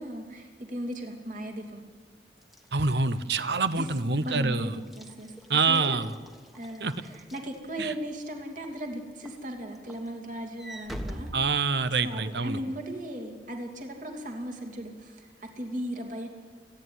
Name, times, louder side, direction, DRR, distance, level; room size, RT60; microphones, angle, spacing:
voice 1, 0.0-1.8 3.7-6.0 6.5-11.3 12.0-16.3, equal, 45° right, 4 dB, 2.8 m, -37 dB
Walk footsteps / Slam, 2.4-8.1 8.6-8.9 9.3-12.3, equal, ahead, 1.3 m, -44 dB
voice 2, 2.7-4.8 5.5-6.1 6.8-6.9 7.8-7.9 11.3-12.6, right 4 dB, 70° right, 13 dB, 1.0 m, -26 dB
28.5 x 10.5 x 9.6 m, 1.5 s
head